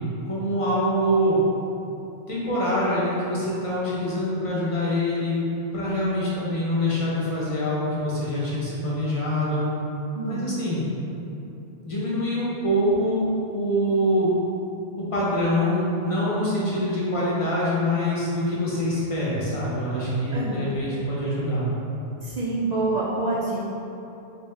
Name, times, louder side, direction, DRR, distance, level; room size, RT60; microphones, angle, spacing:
voice 1, 0.2-1.4 2.3-5.3 5.7-9.6 10.3-10.8 11.8-14.4 15.0-21.7, equal, 30° left, -8 dB, 0.8 m, -25 dB
voice 2, 10.1-10.5 20.3-20.7 22.2-23.6, right 2 dB, 60° right, -6 dB, 0.4 m, -27 dB
3.3 x 3.0 x 3.2 m, 2.9 s
omnidirectional pair, 1.2 m